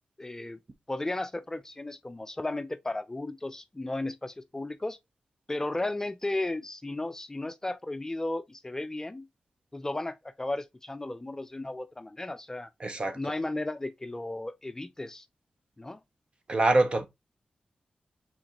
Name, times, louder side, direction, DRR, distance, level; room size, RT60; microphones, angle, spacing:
voice 1, 0.2-0.6 0.9-5.0 5.5-9.3 9.7-12.7 13.1-15.3 15.8-16.0, left 2 dB, 20° left, 0.5 m, -34 dB
voice 2, 12.8-13.2 16.5-17.1, right 2 dB, 40° right, 0.9 m, -24 dB
4.9 x 3.6 x 3.0 m
wide cardioid pair, 95°, 3 cm